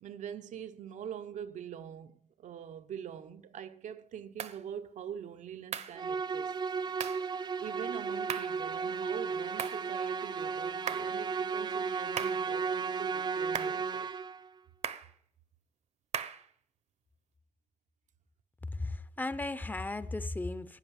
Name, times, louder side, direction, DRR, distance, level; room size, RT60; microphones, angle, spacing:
voice 1, 0.0-6.5 7.6-14.1, right 9 dB, 85° right, 1.1 m, -44 dB
sound 1, 4.4-4.6 5.7-6.0 7.0-7.3 8.3-8.6 9.6-9.9 10.9-11.2 12.2-12.5 13.5-13.8 14.8-15.1 16.1-16.5, right 8 dB, 65° right, 1.1 m, -37 dB
Musical instrument, 6.0-14.5, right 5 dB, 35° right, 0.7 m, -34 dB
voice 2, 18.7-20.8, left 2 dB, 15° left, 0.7 m, -36 dB
17.0 x 10.5 x 7.2 m
wide cardioid pair, 160°, 12 cm